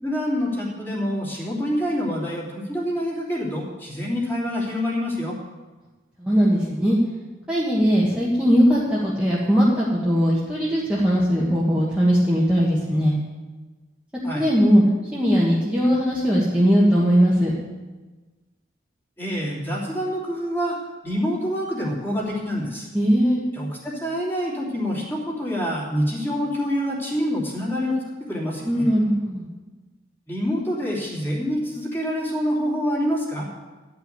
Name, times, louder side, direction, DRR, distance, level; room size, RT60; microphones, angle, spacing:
voice 1, 0.0-5.4 14.2-14.5 19.2-20.8 21.0-22.9 23.5-27.9 28.3-28.9 30.3-33.5, equal, 10° left, -4 dB, 2.8 m, -26 dB
voice 2, 6.2-7.0 7.5-13.2 14.3-14.8 15.1-17.5 22.9-23.4 28.6-29.5, equal, 5° right, -7 dB, 1.6 m, -19 dB
12.5 x 5.8 x 9.2 m, 1.2 s
head